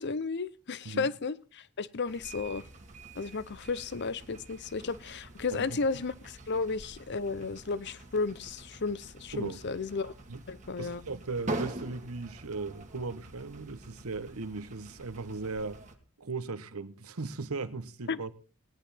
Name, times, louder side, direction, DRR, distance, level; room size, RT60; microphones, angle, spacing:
voice 1, 0.0-2.6 3.2-10.1 10.5-11.0 18.1-18.2, left 4 dB, 50° left, 0.6 m, -33 dB
sound 1, 2.1-16.0, right 2 dB, 35° right, 1.6 m, -44 dB
voice 2, 5.5-6.0 9.3-9.6 10.3-10.4 10.8-15.8 16.2-18.3, right 3 dB, 80° right, 1.0 m, -38 dB
17.5 x 10.5 x 4.2 m
head